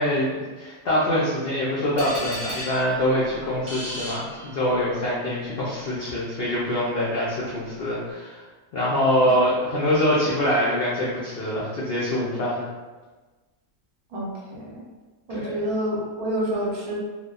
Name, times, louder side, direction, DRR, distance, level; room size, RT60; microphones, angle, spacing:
voice 1, 0.0-8.4 8.7-12.6 15.3-15.5, equal, 75° left, -7 dB, 0.5 m, -24 dB
sound 1, 2.0-5.0, equal, 40° right, 1.0 m, -35 dB
voice 2, 14.1-14.8 15.3-17.0, right 1 dB, 75° right, -4 dB, 1.1 m, -28 dB
2.9 x 2.0 x 2.2 m, 1.3 s
omnidirectional pair, 1.6 m